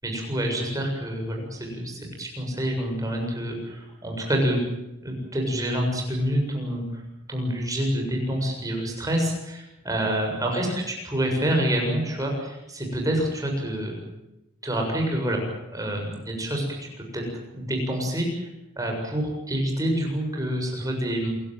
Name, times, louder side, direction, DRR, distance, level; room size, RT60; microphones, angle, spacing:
voice 1, 0.0-4.6 5.0-7.0 7.3-14.0 14.6-15.4 15.7-17.2 17.5-18.5 18.8-21.3, right 1 dB, 15° right, 1 dB, 7.4 m, -27 dB
27.5 x 17.0 x 9.3 m, 0.91 s
head